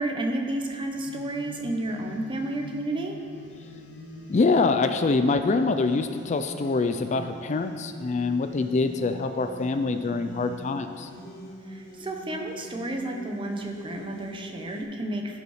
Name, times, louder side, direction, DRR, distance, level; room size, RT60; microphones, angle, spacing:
voice 1, 0.0-3.2 11.7-15.4, right 1 dB, 25° right, 2 dB, 0.9 m, -31 dB
sound 1, 0.9-14.8, left 1 dB, 60° left, 1.5 m, -43 dB
voice 2, 4.3-11.1, left 3 dB, 35° left, 8 dB, 0.4 m, -25 dB
14.5 x 5.5 x 4.9 m, 2.2 s
head